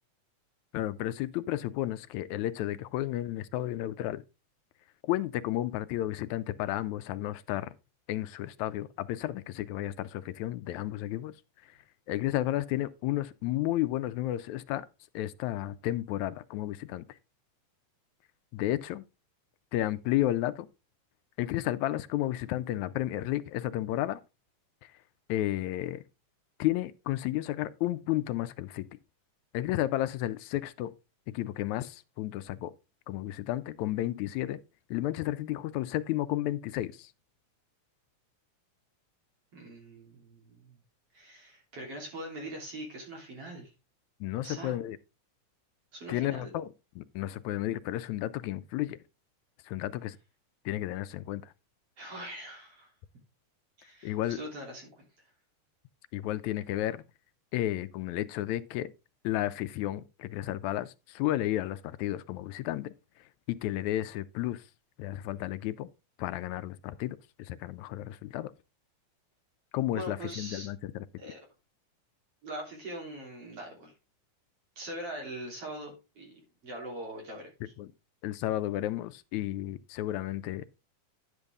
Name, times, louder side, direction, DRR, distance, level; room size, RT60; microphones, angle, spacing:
voice 1, 0.7-4.2 5.0-7.7 8.1-11.3 12.1-14.9 15.1-17.1 18.5-19.0 19.7-20.7 21.4-24.2 25.3-26.0 26.6-28.9 29.5-30.9 31.3-32.7 33.1-34.6 34.9-37.1 44.2-45.0 46.1-46.7 47.0-49.0 49.7-50.2 50.7-51.5 54.0-54.4 56.1-57.0 57.5-58.9 59.2-62.9 63.5-64.6 65.0-65.9 66.2-68.5 69.7-71.1 77.8-77.9 78.2-80.6, left 14 dB, 80° left, 1.9 m, -32 dB
voice 2, 39.5-40.8 41.1-43.7 44.4-44.8 45.9-46.5 52.0-52.9 53.8-55.1 69.9-70.7 71.2-71.4 72.4-73.9 74.8-77.7, right 1 dB, 50° right, 4.1 m, -42 dB
10.5 x 6.7 x 3.5 m
omnidirectional pair, 3.5 m